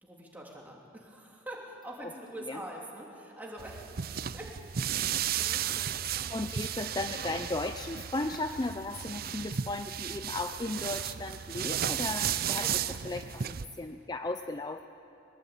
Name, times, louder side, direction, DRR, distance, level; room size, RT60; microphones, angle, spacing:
voice 1, 0.0-6.5 12.5-12.9, right 1 dB, 10° right, -2 dB, 3.1 m, -45 dB
sound 1, 3.6-13.7, right 9 dB, 50° right, 0.5 m, -34 dB
voice 2, 6.3-12.7 13.0-14.8, left 2 dB, 20° left, 8 dB, 0.5 m, -35 dB
22.5 x 20.0 x 8.8 m, 2.7 s
head